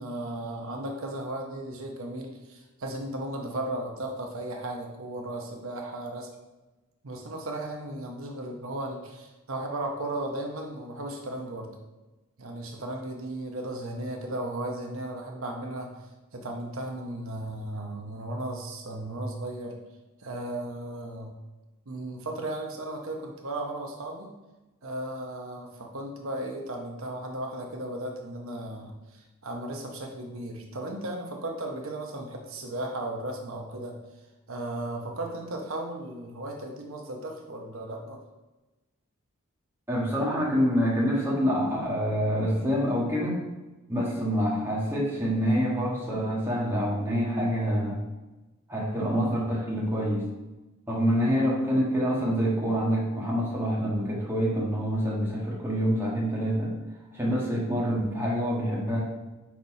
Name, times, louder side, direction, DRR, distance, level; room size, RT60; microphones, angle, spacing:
voice 1, 0.0-6.3 7.0-11.8 12.4-19.8 20.2-21.3 21.9-24.3 24.8-34.0 34.5-38.2 49.0-49.1, right 1 dB, 75° right, 1 dB, 0.9 m, -35 dB
voice 2, 39.9-43.4 43.9-48.0 48.7-50.2 50.9-56.7 57.1-59.0, equal, 10° right, -5 dB, 1.6 m, -26 dB
5.9 x 4.1 x 4.8 m, 1.1 s
head